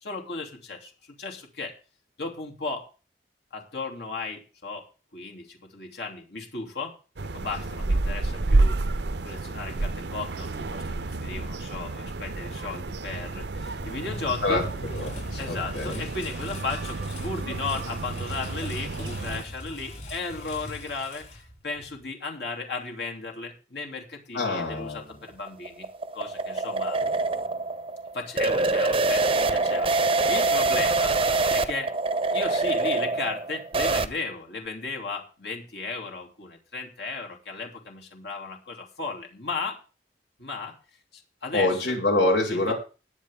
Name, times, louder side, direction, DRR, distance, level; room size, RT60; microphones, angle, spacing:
voice 1, 0.0-0.9 1.2-1.7 2.2-2.9 3.5-4.8 5.1-6.9 7.3-8.8 9.2-14.6 15.4-21.2 21.6-25.9 26.1-27.0 28.1-31.9 32.3-39.8 40.4-40.7 41.1-41.9 42.5-42.7, left 3 dB, 65° left, 1 dB, 3.0 m, -35 dB
sound 1, 7.2-19.4, right 2 dB, 75° right, 0.7 m, -30 dB
Engine, 13.3-22.1, left 1 dB, 40° left, 7.0 m, -41 dB
voice 2, 14.4-16.0 24.3-25.0 41.5-42.7, left 2 dB, 85° left, 0 dB, 6.0 m, -26 dB
sound 2, 25.1-34.1, right 3 dB, 30° right, 0.8 m, -25 dB
20.0 x 8.1 x 3.7 m, 0.34 s
head